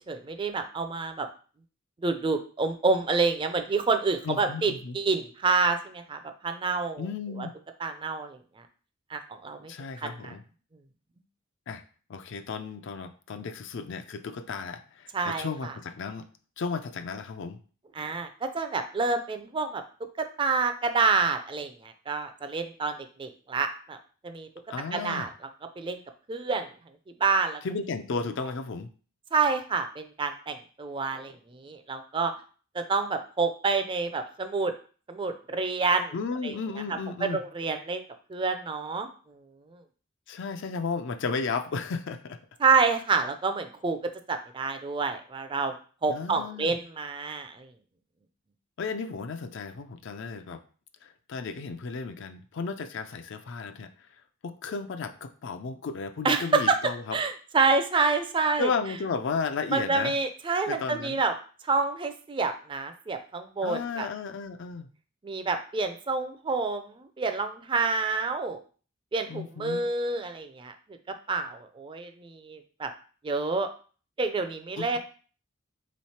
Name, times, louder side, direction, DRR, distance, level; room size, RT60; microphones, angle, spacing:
voice 1, 0.1-1.3 2.0-7.0 7.4-7.5 7.8-8.4 9.1-9.7 10.0-10.3 15.1-15.7 18.0-19.8 20.4-24.0 24.2-24.5 24.9-25.3 25.8-26.0 26.3-26.7 27.2-27.6 29.3-31.3 31.6-32.3 32.7-34.7 35.1-36.1 36.4-36.5 37.2-38.0 38.3-39.1 42.6-44.0 44.3-45.7 46.0-47.7 56.2-56.8 57.1-58.7 59.7-61.3 61.7-64.1 65.2-66.8 67.2-68.6 69.1-70.7 71.3-72.9 73.2-73.7 74.2-75.0, right 4 dB, 25° right, 7 dB, 0.4 m, -28 dB
voice 2, 4.2-5.0 7.0-7.5 9.7-10.4 11.7-11.8 12.1-16.3 16.6-17.6 24.7-25.3 27.6-28.9 36.1-37.4 40.3-42.4 46.1-46.7 48.8-50.6 51.0-53.9 54.4-57.2 58.6-60.2 60.7-61.2 63.6-64.9 69.3-69.8 74.8-75.0, left 4 dB, 60° left, 9 dB, 0.4 m, -34 dB
3.7 x 3.1 x 4.2 m, 0.39 s
head